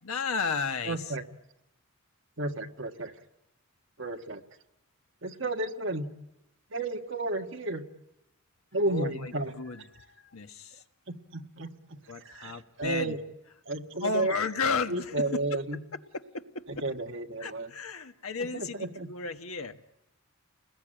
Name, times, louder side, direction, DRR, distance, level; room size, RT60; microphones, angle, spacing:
voice 1, 0.0-1.1 8.9-10.8 12.1-13.2 14.0-15.6 16.1-16.8 17.4-19.8, left 4 dB, 80° left, 7 dB, 1.4 m, -33 dB
voice 2, 0.8-1.2 2.4-3.1 4.0-4.4 5.2-6.1 6.7-7.8 8.7-9.5 11.1-13.2 13.7-14.3 14.9-15.8 16.7-17.7 18.5-19.1, right 2 dB, 55° right, 4 dB, 1.5 m, -32 dB
29.0 x 20.5 x 9.0 m, 0.92 s
head